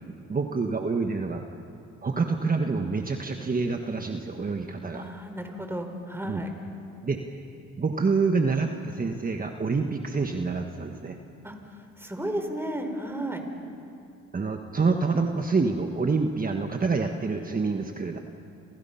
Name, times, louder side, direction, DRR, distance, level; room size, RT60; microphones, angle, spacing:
voice 1, 0.1-1.4 2.0-5.0 6.2-6.4 7.0-7.5 7.8-11.2 14.3-18.2, right 4 dB, 30° right, 4 dB, 1.5 m, -27 dB
voice 2, 4.9-6.5 11.4-13.4, right 1 dB, 10° right, 5 dB, 4.0 m, -33 dB
28.5 x 28.5 x 5.8 m, 2.7 s
cardioid pair, 90°, 30 cm